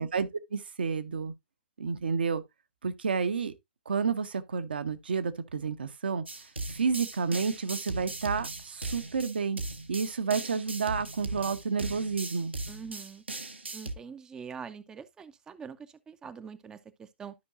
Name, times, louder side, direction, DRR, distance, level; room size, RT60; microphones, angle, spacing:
voice 1, 0.0-1.3 1.8-2.4 2.8-3.5 3.9-6.2 6.7-9.6 9.9-12.5, right 5 dB, 65° right, 1.0 m, -30 dB
sound 1, 6.3-13.9, right 2 dB, 85° right, 1.4 m, -38 dB
voice 2, 12.7-13.2 13.7-17.3, right 6 dB, 10° right, 0.6 m, -44 dB
12.5 x 5.4 x 2.5 m
figure-of-eight pair, 120°, 6 cm